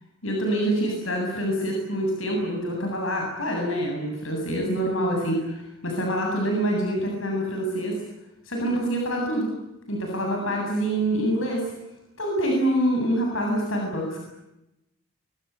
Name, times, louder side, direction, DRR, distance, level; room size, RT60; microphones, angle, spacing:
voice 1, 0.2-8.0 8.5-9.5 9.9-11.6 12.2-14.2, right 1 dB, 70° left, 0 dB, 7.9 m, -26 dB
25.5 x 25.5 x 8.5 m, 0.90 s
head